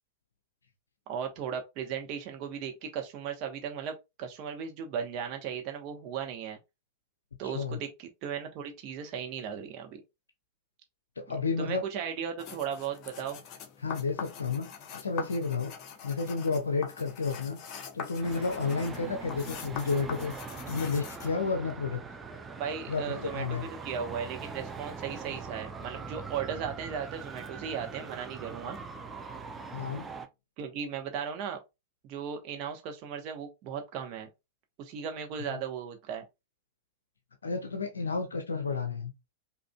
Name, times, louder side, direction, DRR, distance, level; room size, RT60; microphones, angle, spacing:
voice 1, 1.1-6.6 7.4-10.0 11.6-13.4 22.6-28.8 30.6-31.6 32.0-34.3 34.8-36.2, right 7 dB, 40° right, 0.9 m, -36 dB
voice 2, 7.4-7.8 11.2-11.8 13.8-15.7 16.0-17.6 17.9-20.3 20.7-22.0 22.9-23.7 29.7-30.1 35.5-35.6 37.4-39.1, left 4 dB, 75° left, 0.5 m, -31 dB
pencil write, 12.4-21.3, left 7 dB, 35° left, 0.7 m, -43 dB
Traffic noise roadway noise, 18.2-30.3, right 4 dB, 15° right, 0.5 m, -42 dB
4.9 x 2.6 x 2.2 m
figure-of-eight pair, 90°, 0 cm